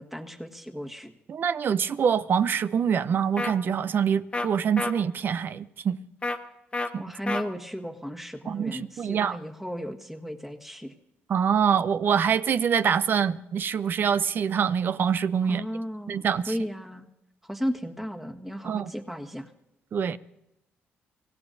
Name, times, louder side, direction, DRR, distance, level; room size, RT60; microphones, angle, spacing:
voice 1, 0.0-1.1 6.9-10.9 15.5-17.1 17.4-19.5, equal, 5° right, 1.6 m, -35 dB
voice 2, 1.3-6.0 6.9-7.0 8.5-9.4 11.3-15.6 16.1-16.5 18.6-18.9 19.9-20.2, right 7 dB, 55° right, 0.6 m, -25 dB
sound 1, 3.4-3.5 4.3-4.5 4.8-4.9 6.2-6.4 6.7-6.9 7.3-7.4, left 2 dB, 25° left, 1.2 m, -28 dB
24.5 x 16.5 x 2.7 m
cardioid pair, 90°, 4 cm